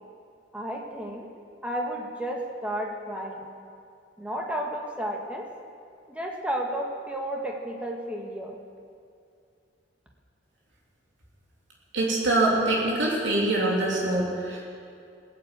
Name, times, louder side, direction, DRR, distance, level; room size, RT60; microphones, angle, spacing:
voice 1, 0.5-1.3 1.6-3.4 4.2-5.5 6.1-8.6, right 1 dB, 5° right, 0 dB, 1.4 m, -32 dB
voice 2, 11.9-14.6, right 2 dB, 75° right, -4 dB, 3.2 m, -24 dB
16.5 x 8.4 x 8.1 m, 2.4 s
head